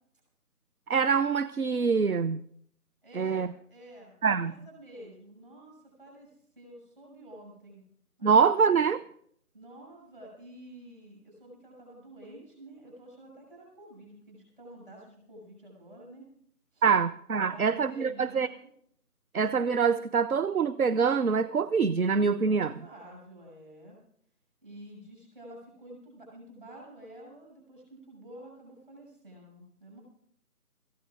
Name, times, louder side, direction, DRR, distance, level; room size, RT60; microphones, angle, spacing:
voice 1, 0.9-2.4 3.1-3.5 4.2-4.5 8.2-9.0 16.8-18.5 19.3-22.7, right 6 dB, 65° right, 13 dB, 0.6 m, -25 dB
voice 2, 3.0-7.8 8.2-8.3 9.5-16.3 16.7-16.8 17.3-18.7 22.4-24.0 24.6-30.0, right 1 dB, 35° right, -2 dB, 6.4 m, -49 dB
24.5 x 15.0 x 2.4 m, 0.65 s
figure-of-eight pair, 165°, 46 cm